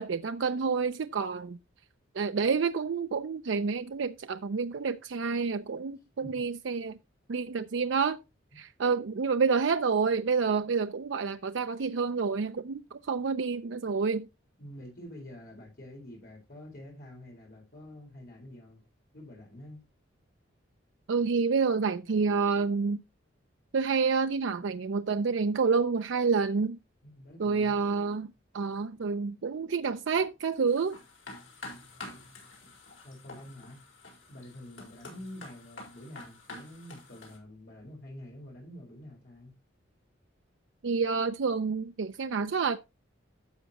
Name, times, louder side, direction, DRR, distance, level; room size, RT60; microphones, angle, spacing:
voice 1, 0.0-1.6 2.1-7.0 7.3-8.2 8.6-14.3 21.1-23.0 23.7-26.8 27.4-28.3 28.5-31.0 40.8-42.8, right 5 dB, 70° right, 0.5 m, -28 dB
voice 2, 14.6-18.8 19.1-19.8 27.0-27.8 31.9-32.2 32.6-32.7 33.0-33.8 34.3-39.5, left 1 dB, 45° left, 4.4 m, -47 dB
sound 1, 30.7-37.4, left 2 dB, 75° left, 4.4 m, -48 dB
12.5 x 7.3 x 2.9 m
head